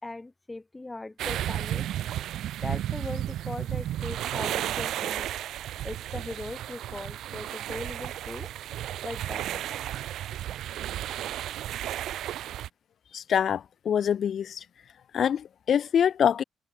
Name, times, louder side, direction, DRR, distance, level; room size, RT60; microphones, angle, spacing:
voice 1, 0.0-1.9 2.6-5.3 5.8-8.5 9.0-9.7, left 2 dB, 15° left, 4.0 m, -39 dB
sound 1, 1.2-12.7, right 12 dB, 90° right, 0.4 m, -33 dB
voice 2, 13.1-14.6 15.1-16.4, left 8 dB, 60° left, 1.1 m, -25 dB
cardioid pair, 115°, 0 cm